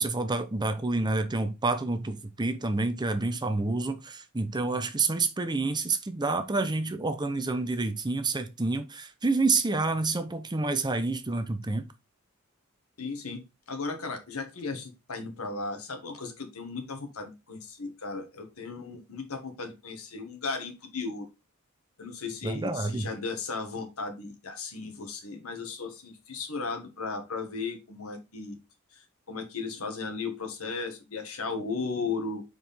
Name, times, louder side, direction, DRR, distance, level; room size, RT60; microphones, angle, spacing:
voice 1, 0.0-11.9 22.4-23.1, right 3 dB, 20° right, 0.6 m, -28 dB
voice 2, 13.0-13.4 13.7-21.3 22.0-28.6 29.3-32.4, left 4 dB, 80° left, 1.6 m, -36 dB
5.6 x 4.7 x 4.1 m
head